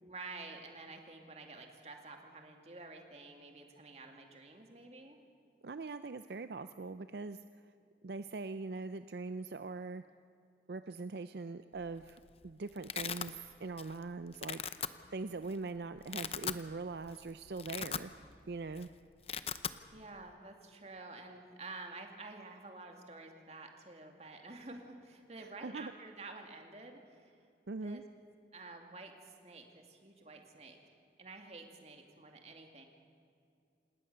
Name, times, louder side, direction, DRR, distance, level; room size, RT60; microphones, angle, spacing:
voice 1, 0.0-5.2 15.0-15.1 19.9-27.3 27.8-28.0 28.5-30.8 31.2-32.8, right 3 dB, 35° right, 3 dB, 2.4 m, -50 dB
voice 2, 5.6-7.4 8.0-10.0 10.7-14.6 15.1-18.1 18.5-18.9 25.4-25.9 27.7-28.0, right 3 dB, 70° right, 11 dB, 0.5 m, -42 dB
Domestic sounds home sounds, 11.8-12.2 12.4-13.3 13.8-14.0 14.3-14.9 15.5-15.6 16.0-16.6 17.0-17.2 17.5-18.4 18.7-18.8 19.1-19.8, left 8 dB, 35° left, 0.7 m, -39 dB
27.0 x 19.5 x 6.8 m, 2.4 s
head